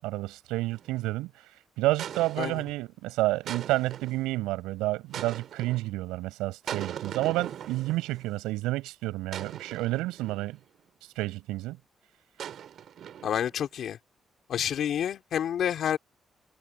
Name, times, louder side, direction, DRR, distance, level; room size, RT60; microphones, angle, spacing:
voice 1, 0.0-1.3 1.8-10.6 11.2-11.8, right 18 dB, 85° right, 7.6 m, -30 dB
sound 1, 0.7-1.1 2.0-2.8 3.5-4.3 5.1-5.9 6.7-8.3 9.3-10.6 12.4-13.6, right 9 dB, 70° right, 6.6 m, -40 dB
voice 2, 13.2-14.0 14.5-16.0, left 9 dB, 70° left, 3.3 m, -29 dB
hypercardioid pair, 45°, 0 cm